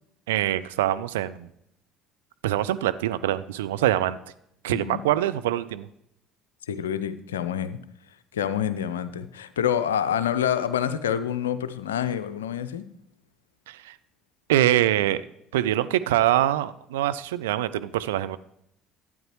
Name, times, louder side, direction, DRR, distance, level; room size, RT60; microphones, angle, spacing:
voice 1, 0.3-1.5 2.4-4.2 4.6-5.9 13.7-13.9 14.5-15.2 15.5-18.4, right 13 dB, 70° right, 13 dB, 0.4 m, -24 dB
voice 2, 4.7-5.0 6.7-7.8 8.3-12.8, left 9 dB, 75° left, 13 dB, 0.5 m, -27 dB
11.5 x 9.0 x 3.1 m, 0.76 s
figure-of-eight pair, 55°, 0 cm